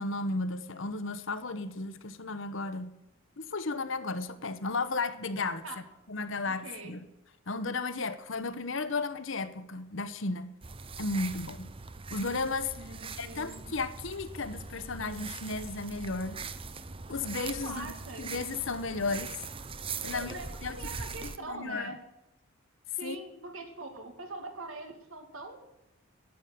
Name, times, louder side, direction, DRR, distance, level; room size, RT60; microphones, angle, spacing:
voice 1, 0.0-3.0 3.4-5.6 6.1-7.0 7.5-10.5 11.0-11.7 12.1-16.4 17.1-17.9 18.2-19.4 20.0-20.3 20.6-20.8 21.2-22.0 23.0-23.2, left 3 dB, 65° left, 1.0 m, -34 dB
voice 2, 6.4-6.9 12.8-13.7 17.6-18.3 20.1-22.0 23.0-25.6, right 2 dB, 80° right, 2.4 m, -42 dB
sound 1, 10.6-21.4, right 4 dB, 25° right, 0.6 m, -41 dB
12.0 x 8.4 x 9.3 m
head